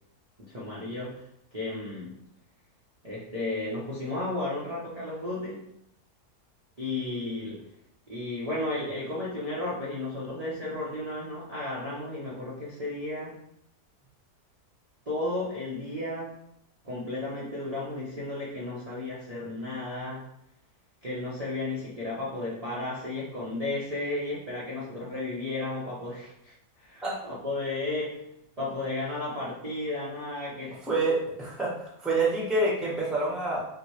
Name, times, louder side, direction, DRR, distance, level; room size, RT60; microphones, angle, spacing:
voice 1, 0.4-1.2 1.5-2.2 3.0-5.6 6.8-7.7 8.1-13.4 15.1-16.3 16.8-20.2 21.0-28.3 28.6-30.8, left 2 dB, 30° right, -9 dB, 0.8 m, -33 dB
voice 2, 30.8-33.7, right 2 dB, ahead, -4 dB, 0.9 m, -27 dB
5.8 x 2.2 x 3.2 m, 0.76 s
omnidirectional pair, 1.7 m